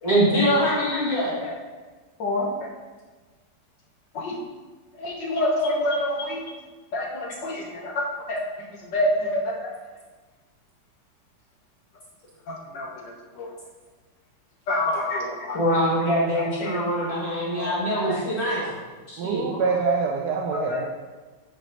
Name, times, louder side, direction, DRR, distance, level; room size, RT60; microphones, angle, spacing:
voice 1, 0.0-1.4 15.5-18.7 19.1-19.5, equal, 55° left, -9 dB, 2.4 m, -23 dB
voice 2, 5.0-6.4 6.9-8.4 8.9-9.6 12.5-12.9 13.4-13.5 14.7-15.6 15.9-16.0 16.3-16.8 17.6-18.1 20.5-20.8, left 1 dB, 75° left, 0 dB, 1.9 m, -27 dB
voice 3, 19.2-20.9, right 5 dB, 70° right, 1 dB, 1.1 m, -25 dB
9.2 x 4.6 x 4.0 m, 1.3 s
omnidirectional pair, 2.0 m